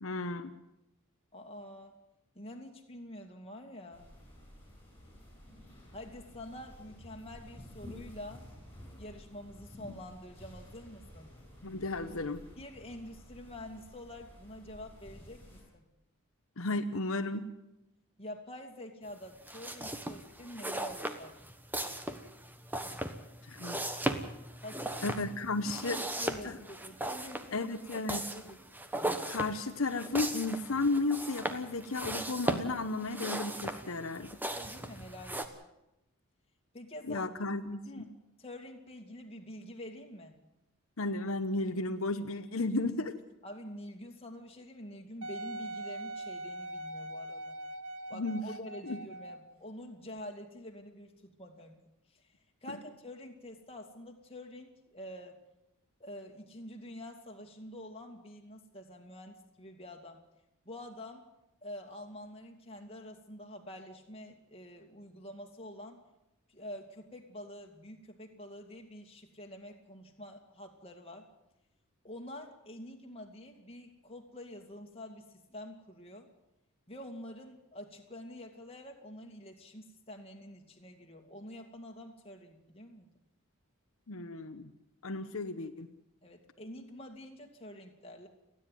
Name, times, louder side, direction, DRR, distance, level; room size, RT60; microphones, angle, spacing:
voice 1, 0.0-0.5 11.6-12.4 16.6-17.5 23.5-23.8 25.0-26.0 26.4-26.6 27.5-28.3 29.2-34.3 37.1-38.1 41.0-43.1 48.1-48.4 48.9-49.0 52.7-52.8 84.1-84.7 85.0-85.9, left 2 dB, 70° left, 7 dB, 1.0 m, -34 dB
voice 2, 1.3-1.9 2.3-4.1 5.9-8.5 9.0-11.3 12.6-15.8 18.2-21.3 24.6-25.1 25.6-27.6 28.3-28.6 34.5-35.6 36.7-37.3 37.9-40.3 43.4-47.6 48.1-51.8 52.1-52.3 52.6-55.4 56.0-60.2 60.7-61.3 61.6-66.0 66.5-71.3 72.0-76.3 76.9-83.1 86.2-88.3, left 1 dB, 25° left, 2 dB, 2.4 m, -47 dB
sound 1, 3.9-15.6, left 1 dB, 10° left, 6.9 m, -52 dB
sound 2, 19.4-35.5, right 1 dB, 10° right, 1.2 m, -38 dB
Wind instrument woodwind instrument, 45.2-49.5 50.2-50.3, right 1 dB, 70° right, 1.2 m, -42 dB
30.0 x 10.0 x 9.2 m, 0.89 s
head